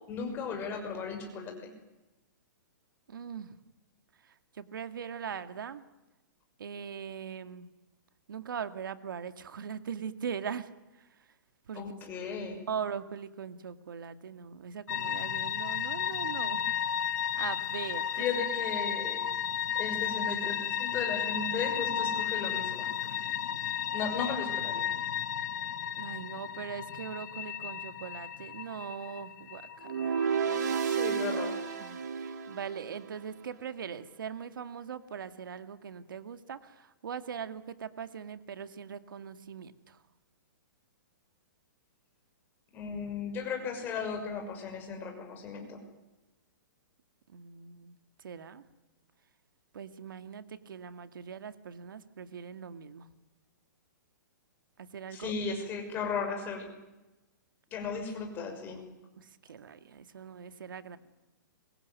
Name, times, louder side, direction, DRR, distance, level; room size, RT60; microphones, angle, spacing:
voice 1, 0.1-1.5 11.7-12.6 18.2-19.2 19.7-22.9 23.9-24.9 30.8-31.6 42.7-45.8 55.1-56.7 57.7-58.8, left 5 dB, 20° left, 4 dB, 5.8 m, -36 dB
voice 2, 3.1-3.5 4.2-5.8 6.6-7.7 8.3-11.1 11.7-12.0 12.3-16.8 17.3-18.5 26.0-30.2 30.4-30.8 31.8-40.0 47.3-48.6 49.7-53.1 54.8-55.3 59.2-61.0, right 7 dB, 85° right, 10 dB, 2.1 m, -41 dB
sound 1, 14.9-31.9, left 9 dB, 60° left, 1.7 m, -34 dB
sound 2, 29.8-33.1, right 6 dB, 60° right, 4.8 m, -31 dB
25.5 x 23.5 x 9.4 m, 1.0 s
hypercardioid pair, 165°, 11 cm